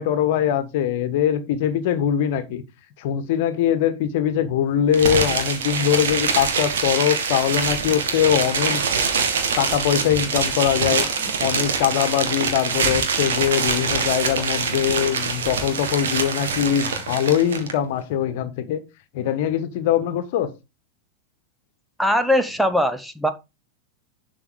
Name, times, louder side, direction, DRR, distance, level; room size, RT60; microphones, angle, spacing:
voice 1, 0.0-2.6 3.0-8.8 9.6-18.8 19.1-20.5, left 9 dB, 50° left, 1.4 m, -22 dB
sound 1, 4.9-17.7, right 5 dB, 60° right, 2.0 m, -24 dB
voice 2, 22.0-23.3, equal, ahead, 0.8 m, -20 dB
11.0 x 4.9 x 4.8 m
figure-of-eight pair, 90°, 0 cm